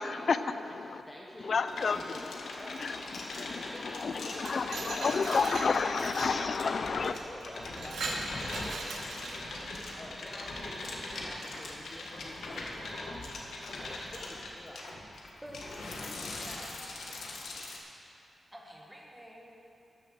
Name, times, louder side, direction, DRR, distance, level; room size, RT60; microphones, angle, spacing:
voice 1, 0.0-1.0 1.4-7.1, left 5 dB, 45° left, 11 dB, 0.4 m, -31 dB
voice 2, 1.1-1.5 1.9-5.7 6.9-14.8, left 1 dB, 20° left, -3 dB, 1.0 m, -49 dB
sound 1, 1.7-17.8, left 2 dB, 75° left, 1.4 m, -41 dB
Glass, 4.1-6.4 7.1-7.2 7.6-9.6, right 3 dB, 75° right, 1.2 m, -39 dB
voice 3, 15.4-17.5 18.5-19.5, equal, 5° right, -2 dB, 1.4 m, -50 dB
13.0 x 6.9 x 6.3 m, 2.7 s
wide cardioid pair, 175°, 0 cm